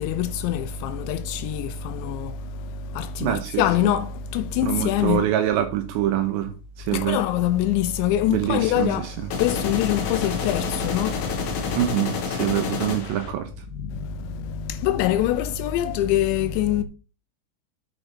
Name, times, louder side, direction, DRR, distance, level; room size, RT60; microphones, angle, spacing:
voice 1, 0.0-5.3 6.9-11.8 12.4-12.6 13.7-16.8, left 11 dB, 90° left, 2.5 m, -25 dB
voice 2, 3.2-3.6 4.6-6.5 6.8-7.2 8.3-9.1 11.7-13.5, right 12 dB, 85° right, 2.5 m, -25 dB
sound 1, 9.3-13.3, left 5 dB, 65° left, 1.9 m, -28 dB
8.9 x 7.8 x 4.4 m
omnidirectional pair, 6.0 m